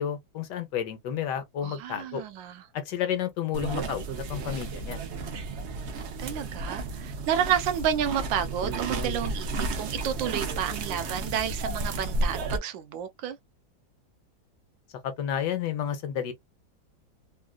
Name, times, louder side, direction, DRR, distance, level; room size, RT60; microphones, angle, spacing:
voice 1, 0.0-2.2 2.7-5.0 15.0-16.3, left 9 dB, 75° left, 1.3 m, -31 dB
voice 2, 1.6-2.6 6.2-13.4, right 9 dB, 90° right, 1.4 m, -30 dB
sound 1, 3.5-12.6, right 2 dB, 70° right, 0.6 m, -32 dB
3.6 x 2.4 x 2.2 m
omnidirectional pair, 2.0 m